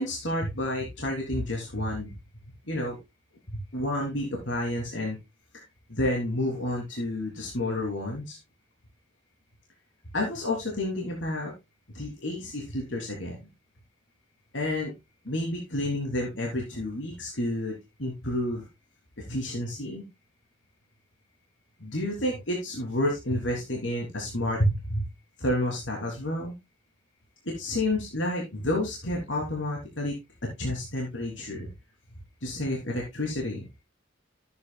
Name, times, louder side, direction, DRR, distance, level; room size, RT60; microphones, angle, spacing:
voice 1, 0.0-2.1 2.7-3.0 3.5-5.2 5.9-8.4 10.1-11.5 11.9-13.4 14.5-14.9 15.2-18.7 19.3-20.0 21.8-25.1 25.4-26.5 27.4-30.1 30.4-31.7 32.4-33.7, left 1 dB, 70° left, -2 dB, 3.2 m, -30 dB
13.5 x 9.3 x 2.3 m, 0.22 s
head